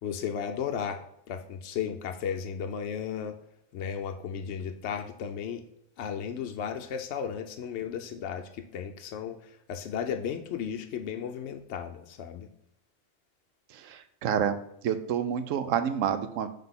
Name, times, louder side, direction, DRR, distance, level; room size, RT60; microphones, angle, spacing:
voice 1, 0.0-1.0 1.3-3.4 3.7-5.6 6.0-12.5, left 7 dB, 65° left, 5 dB, 0.8 m, -34 dB
voice 2, 13.7-14.6 14.8-16.5, right 8 dB, 75° right, 11 dB, 1.0 m, -28 dB
5.7 x 3.7 x 5.6 m, 0.77 s
omnidirectional pair, 1.4 m